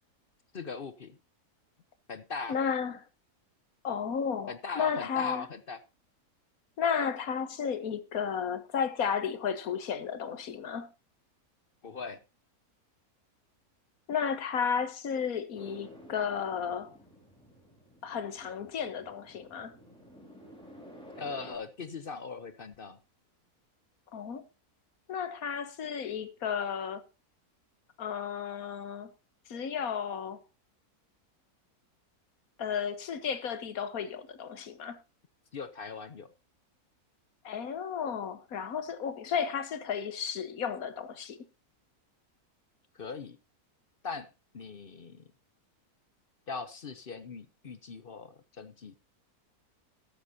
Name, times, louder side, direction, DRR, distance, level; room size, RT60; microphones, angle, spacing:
voice 1, 0.5-1.2 2.1-2.6 4.5-5.8 11.8-12.2 21.2-23.0 35.5-36.3 42.9-43.4 44.0-45.2 46.5-48.9, left 4 dB, 45° left, 0.8 m, -40 dB
voice 2, 2.5-3.0 3.8-5.4 6.8-10.9 14.1-17.0 18.0-19.7 24.1-24.4 25.1-27.0 28.0-29.1 29.5-30.4 32.6-35.0 37.4-41.4, left 7 dB, 65° left, 1.5 m, -33 dB
sound 1, 15.5-21.6, equal, 5° left, 3.8 m, -52 dB
14.0 x 12.5 x 2.7 m
omnidirectional pair, 1.6 m